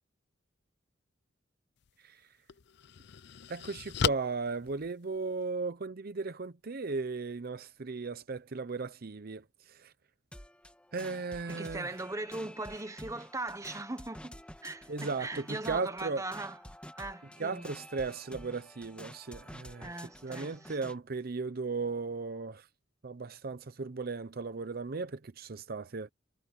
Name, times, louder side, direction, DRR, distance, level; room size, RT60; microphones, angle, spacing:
sound 1, 1.8-1.9 2.5-5.5, left 8 dB, 65° left, 0.5 m, -36 dB
voice 1, 3.5-9.9 10.9-11.9 14.9-16.2 17.4-19.9 20.2-22.7 23.0-26.1, right 4 dB, 55° right, 0.7 m, -36 dB
sound 2, 10.3-21.0, left 1 dB, 5° left, 2.4 m, -50 dB
voice 2, 11.5-16.6 17.0-17.7 19.8-20.7, right 2 dB, 15° right, 1.2 m, -40 dB
head